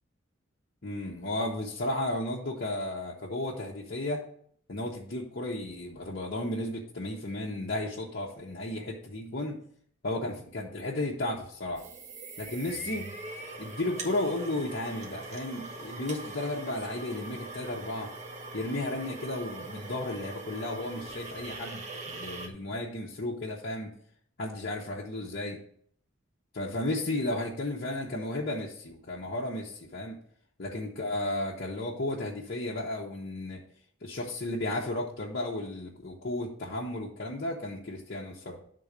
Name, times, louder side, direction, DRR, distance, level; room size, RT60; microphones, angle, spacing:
voice 1, 0.8-4.3 4.7-9.6 10.0-11.8 12.4-13.1 13.6-18.1 18.5-23.9 24.4-25.6 26.5-30.2 30.6-33.6 34.0-38.6, left 1 dB, 55° left, -5 dB, 1.0 m, -34 dB
sound 1, 11.7-22.5, right 2 dB, 35° right, 1.0 m, -42 dB
11.5 x 3.8 x 5.2 m, 0.62 s
head